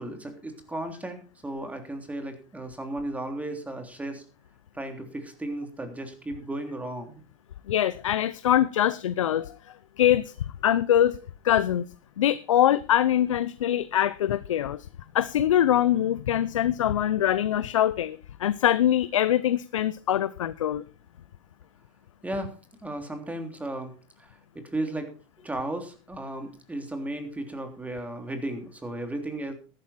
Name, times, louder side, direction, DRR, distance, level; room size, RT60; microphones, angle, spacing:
voice 1, 0.0-4.2 4.7-7.2 8.7-8.9 22.2-22.5 22.8-25.1 25.4-29.5, right 1 dB, 10° right, 5 dB, 3.3 m, -35 dB
voice 2, 7.7-9.6 10.0-10.3 10.6-11.2 11.4-11.9 12.2-14.9 15.1-20.8, left 11 dB, 85° left, 15 dB, 0.6 m, -23 dB
13.5 x 12.0 x 4.3 m, 0.36 s
hypercardioid pair, 105°, 16 cm